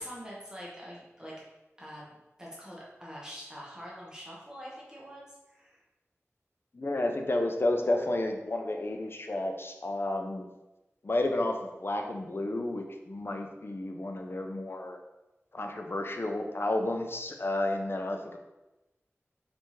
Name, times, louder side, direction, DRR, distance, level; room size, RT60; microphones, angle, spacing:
voice 1, 0.0-1.4 1.8-5.8, equal, 15° right, -6 dB, 1.3 m, -45 dB
voice 2, 6.7-10.5 11.0-15.0 15.5-18.4, left 1 dB, 50° left, 4 dB, 0.5 m, -31 dB
4.1 x 3.4 x 3.2 m, 1.0 s
wide cardioid pair, 45°, 5 cm